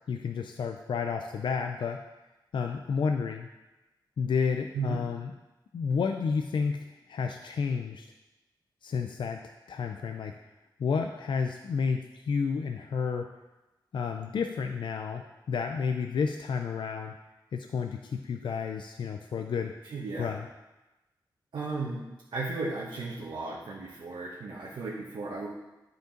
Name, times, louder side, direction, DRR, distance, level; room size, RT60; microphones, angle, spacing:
voice 1, 0.1-2.0 2.5-3.5 4.2-5.3 5.7-8.1 8.8-9.4 9.7-10.3 10.8-13.3 13.9-17.1 17.5-19.7 20.2-20.5, left 5 dB, 75° left, 4 dB, 0.5 m, -31 dB
voice 2, 19.8-20.3 21.5-22.1 22.3-25.5, right 3 dB, 75° right, -5 dB, 1.3 m, -35 dB
11.5 x 5.3 x 3.9 m, 1.0 s
wide cardioid pair, 140°, 8 cm